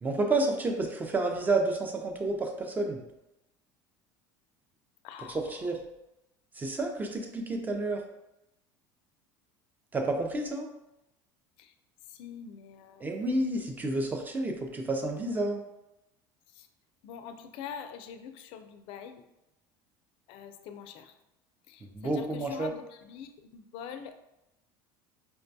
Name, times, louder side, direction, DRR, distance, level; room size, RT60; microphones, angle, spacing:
voice 1, 0.0-3.0 5.3-5.8 6.5-8.0 9.9-10.7 13.0-15.6 21.9-22.7, right 2 dB, 15° right, 3 dB, 0.5 m, -30 dB
voice 2, 5.0-5.5 11.6-11.7 12.1-13.1 16.5-16.7 17.0-19.2 20.3-21.2 21.7-24.2, left 7 dB, 60° left, 8 dB, 0.4 m, -44 dB
4.5 x 2.2 x 2.6 m, 0.90 s
supercardioid pair, 125°, 10 cm